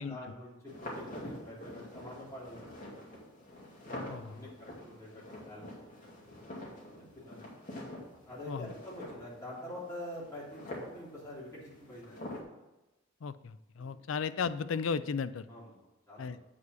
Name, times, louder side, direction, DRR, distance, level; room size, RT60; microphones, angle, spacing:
voice 1, 0.0-3.1 3.8-6.0 6.2-7.5 8.3-12.2 13.8-13.9 15.5-15.7 16.1-16.4, left 1 dB, 15° left, -8 dB, 3.1 m, -46 dB
sound 1, 0.7-12.4, left 1 dB, 40° left, 2.4 m, -46 dB
voice 2, 4.1-4.4 8.5-8.7 13.2-15.5 16.2-16.4, left 5 dB, 80° left, 14 dB, 0.4 m, -35 dB
8.3 x 5.0 x 6.2 m, 1.0 s
head